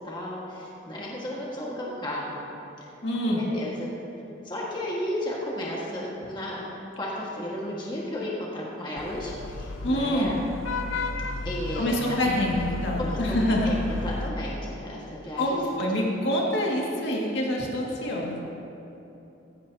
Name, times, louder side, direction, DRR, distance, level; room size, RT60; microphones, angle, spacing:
voice 1, 0.0-2.4 2.8-2.9 3.2-3.9 4.4-6.6 7.0-10.3 11.4-12.2 12.9-15.6 18.0-18.1, left 1 dB, 25° left, -5 dB, 1.7 m, -34 dB
voice 2, 3.0-3.4 9.8-10.3 11.8-13.7 15.4-18.4, left 1 dB, 60° left, -3 dB, 2.1 m, -26 dB
Vehicle horn car horn honking / Traffic noise roadway noise, 9.0-14.3, left 3 dB, 80° left, 0.7 m, -33 dB
16.5 x 15.0 x 2.8 m, 2.9 s
head